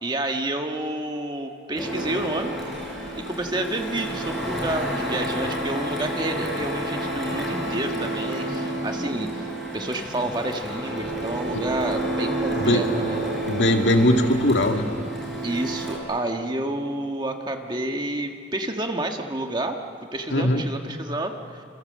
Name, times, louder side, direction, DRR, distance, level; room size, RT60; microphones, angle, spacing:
voice 1, 0.0-2.5 3.2-9.5 9.7-13.2 15.4-19.8 20.1-21.6, right 1 dB, 25° right, 4 dB, 1.5 m, -29 dB
Printer, 1.7-16.0, right 1 dB, ahead, 5.7 m, -30 dB
voice 2, 13.5-14.9 20.3-20.6, left 1 dB, 65° left, 4 dB, 2.1 m, -20 dB
27.5 x 27.0 x 7.6 m, 2.4 s
head